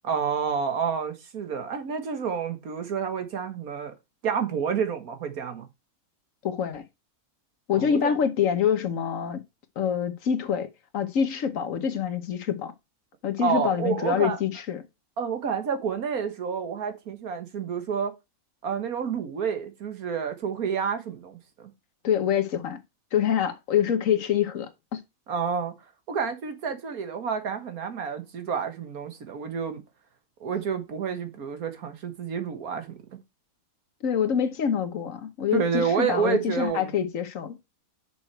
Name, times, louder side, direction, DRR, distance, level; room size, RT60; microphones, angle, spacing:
voice 1, 0.0-3.9 4.2-5.7 7.7-8.1 13.4-14.4 15.2-18.1 18.6-21.7 25.3-25.7 26.1-29.8 30.4-33.2 35.5-36.9, right 6 dB, 85° right, 1.9 m, -29 dB
voice 2, 6.4-6.8 7.7-9.4 9.8-10.7 10.9-12.7 13.2-14.8 22.0-22.8 23.1-25.0 34.0-37.6, left 8 dB, 65° left, 1.3 m, -26 dB
6.3 x 6.3 x 4.5 m
omnidirectional pair, 1.5 m